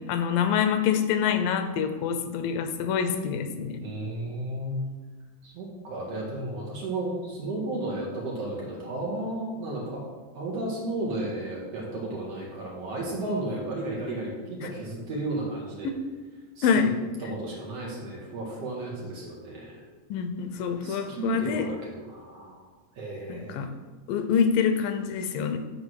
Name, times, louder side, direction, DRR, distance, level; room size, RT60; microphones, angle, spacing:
voice 1, 0.0-3.8 14.6-14.7 15.8-16.0 16.6-17.0 20.1-21.7 23.3-23.7 24.1-25.6, left 7 dB, 90° left, 8 dB, 2.4 m, -26 dB
voice 2, 3.8-4.8 5.4-10.0 10.3-15.9 16.6-16.9 17.2-19.8 20.8-22.6 23.0-23.7, right 2 dB, 55° right, -3 dB, 2.4 m, -33 dB
9.8 x 3.7 x 6.2 m, 1.3 s
omnidirectional pair, 3.8 m